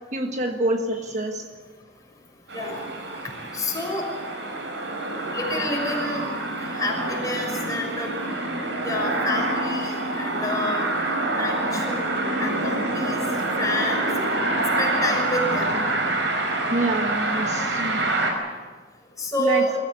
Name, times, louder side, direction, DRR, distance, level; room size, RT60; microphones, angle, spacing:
voice 1, 0.1-1.5 3.1-3.2 16.7-18.0 19.4-19.7, right 1 dB, 40° right, 4 dB, 1.5 m, -26 dB
sound 1, 2.5-18.3, right 2 dB, 75° right, 5.1 m, -26 dB
voice 2, 3.5-4.1 5.3-6.3 6.6-8.1 8.8-10.9 11.4-13.2 13.6-14.0 14.8-15.7 19.2-19.7, left 1 dB, 20° left, 0 dB, 6.3 m, -28 dB
24.0 x 15.5 x 9.5 m, 1.5 s
head